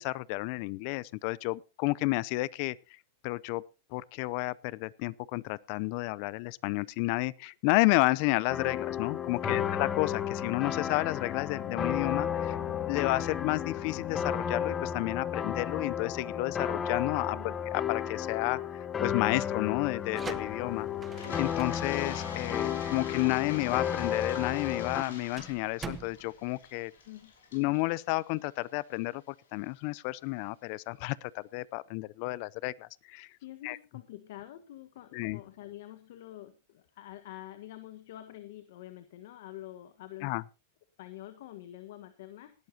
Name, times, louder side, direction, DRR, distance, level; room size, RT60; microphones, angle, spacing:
voice 1, 0.0-2.8 3.2-3.6 3.9-17.4 17.7-20.9 21.4-26.9 27.5-33.3 33.6-33.8 35.1-35.4 40.2-40.4, left 22 dB, 50° left, 0.6 m, -31 dB
sound 1, 8.5-25.0, left 8 dB, 20° left, 1.1 m, -33 dB
voice 2, 9.4-9.7 17.3-17.6 27.0-27.3 33.4-40.3 41.0-42.5, left 14 dB, 70° left, 1.4 m, -46 dB
sound 2, 19.9-27.5, right 6 dB, 20° right, 1.1 m, -47 dB
Toilet flush, 21.0-29.0, left 5 dB, 85° left, 5.9 m, -46 dB
19.0 x 12.0 x 2.9 m
hypercardioid pair, 130°, 0 cm